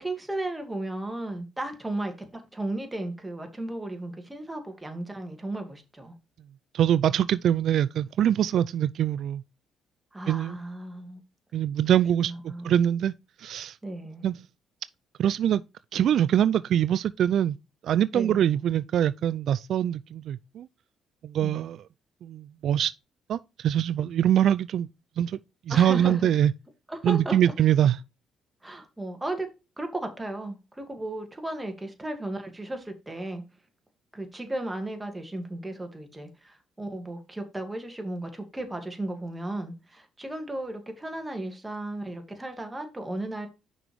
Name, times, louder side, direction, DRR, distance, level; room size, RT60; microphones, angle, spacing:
voice 1, 0.0-6.1 10.1-11.2 12.2-13.0 13.8-14.3 18.1-18.4 25.7-26.3 26.9-27.4 28.6-29.5 29.8-33.4 34.1-43.5, right 1 dB, 10° right, 2.1 m, -35 dB
voice 2, 6.7-9.4 10.3-10.6 11.5-13.1 13.4-13.8 14.2-14.3 15.2-15.6 15.9-17.6 17.8-20.7 21.2-21.8 22.2-22.9 23.3-24.9 25.2-25.4 25.7-26.5 27.0-28.0, right 10 dB, 65° right, 0.3 m, -24 dB
5.9 x 5.2 x 4.6 m
cardioid pair, 95°, 0 cm